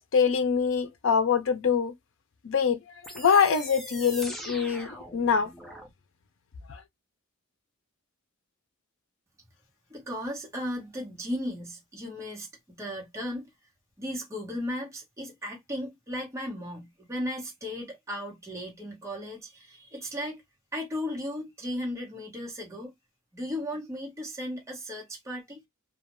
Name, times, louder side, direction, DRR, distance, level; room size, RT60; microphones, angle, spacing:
voice 1, 0.1-1.9 2.4-2.8 3.1-5.5, left 6 dB, 60° left, 0.5 m, -24 dB
sound 1, 3.0-5.9, equal, ahead, 0.5 m, -41 dB
voice 2, 9.9-12.5 12.8-13.5 14.0-20.4 20.7-22.9 23.3-25.6, left 1 dB, 15° right, 1.0 m, -36 dB
2.4 x 2.1 x 3.0 m
head